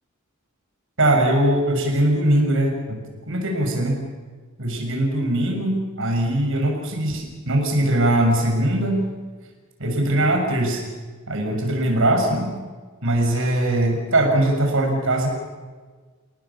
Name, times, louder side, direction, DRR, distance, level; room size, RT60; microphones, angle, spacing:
voice 1, 1.0-4.0 4.6-9.0 9.8-10.8 11.3-12.5 13.0-15.3, right 1 dB, 60° right, 3 dB, 6.6 m, -21 dB
30.0 x 18.5 x 7.1 m, 1.4 s
head